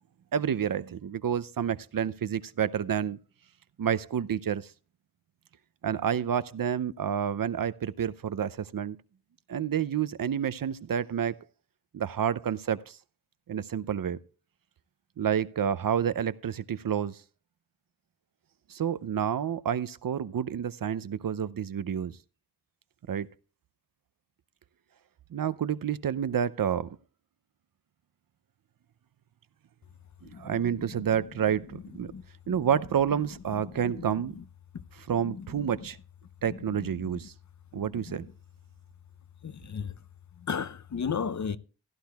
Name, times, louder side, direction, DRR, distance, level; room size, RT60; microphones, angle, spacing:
voice 1, 0.3-3.2 3.8-4.7 5.8-9.0 9.5-11.4 11.9-13.0 13.5-14.2 15.2-17.2 18.7-22.1 23.1-23.3 25.3-27.0 30.2-32.1 32.5-34.4 34.9-36.0 36.4-37.3 37.7-38.3, right 8 dB, 60° right, 0.6 m, -29 dB
voice 2, 30.3-30.9 32.1-32.2 32.5-32.6 33.7-34.1 34.4-34.5 35.2-35.7 36.5-36.6 37.8-38.2 39.4-39.9 40.5-41.6, left 6 dB, 45° left, 0.6 m, -35 dB
16.0 x 11.5 x 2.3 m
cardioid pair, 55°, 39 cm